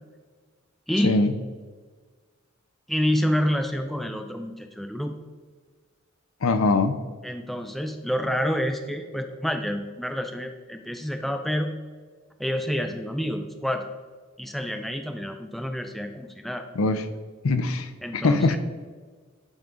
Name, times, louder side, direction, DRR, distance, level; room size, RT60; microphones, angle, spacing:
voice 1, 2.9-5.2 7.2-11.7 12.4-13.8 14.4-16.6 18.0-18.6, equal, ahead, 5 dB, 0.4 m, -28 dB
voice 2, 6.4-7.0 16.8-17.0 17.4-18.6, left 3 dB, 90° left, 10 dB, 0.6 m, -22 dB
10.5 x 3.7 x 3.8 m, 1.5 s
head